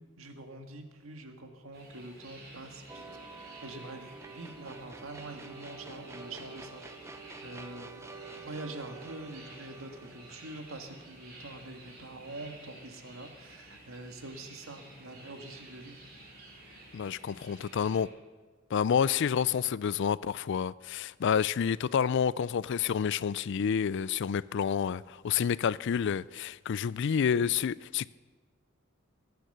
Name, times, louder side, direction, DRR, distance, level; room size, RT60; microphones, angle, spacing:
voice 1, 0.0-3.0 3.3-6.8 7.2-8.1 8.4-16.0, right 2 dB, 80° right, 1.8 m, -45 dB
sound 1, 1.7-18.1, right 1 dB, 55° right, 5.8 m, -52 dB
sound 2, 2.9-12.1, right 3 dB, 15° right, 0.8 m, -48 dB
voice 2, 16.9-18.1 18.7-28.1, left 7 dB, 60° left, 0.4 m, -29 dB
21.5 x 9.2 x 6.7 m
head